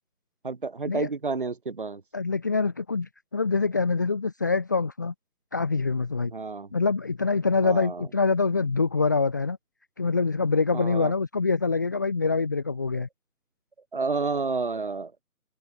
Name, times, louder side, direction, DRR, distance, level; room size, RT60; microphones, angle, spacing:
voice 1, 0.4-2.0 6.3-6.7 7.6-8.1 10.7-11.1 12.9-13.0 13.9-15.2, right 4 dB, 35° right, 7.7 m, -30 dB
voice 2, 2.1-5.1 5.5-6.3 6.7-9.6 10.0-13.1, left 4 dB, 10° left, 2.2 m, -25 dB
figure-of-eight pair, 170°, 46 cm